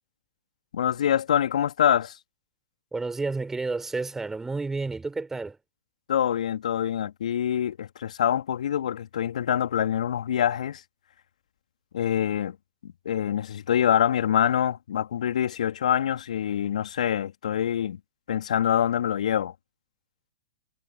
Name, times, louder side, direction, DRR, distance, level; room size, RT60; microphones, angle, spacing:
voice 1, 0.7-2.2 6.1-10.8 11.9-12.6 12.8-18.0 18.3-19.5, left 9 dB, 60° left, 2.4 m, -25 dB
voice 2, 2.9-5.6, right 3 dB, 10° right, 4.3 m, -30 dB
figure-of-eight pair, 110°, 4 cm